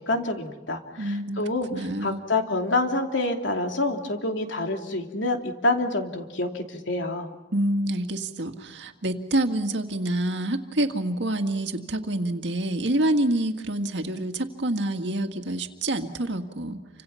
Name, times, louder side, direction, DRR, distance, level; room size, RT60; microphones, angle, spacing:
voice 1, 0.0-7.3, left 2 dB, 75° left, 3 dB, 2.9 m, -27 dB
voice 2, 1.0-1.4 1.7-2.2 7.5-16.8, right 1 dB, 65° right, 6 dB, 2.0 m, -27 dB
29.5 x 26.0 x 5.8 m, 1.2 s
head